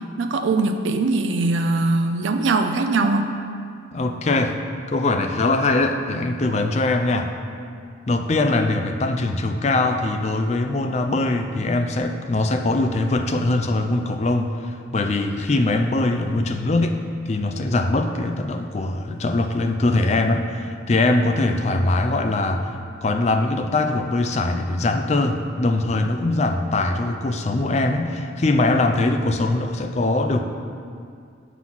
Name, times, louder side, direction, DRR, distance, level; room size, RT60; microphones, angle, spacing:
voice 1, 0.2-3.3, right 3 dB, 80° right, 6 dB, 0.4 m, -21 dB
voice 2, 3.9-4.6 4.9-7.3 8.1-17.0 17.3-22.7 23.0-30.4, left 2 dB, 35° left, 6 dB, 0.4 m, -22 dB
7.3 x 4.0 x 6.0 m, 2.3 s
head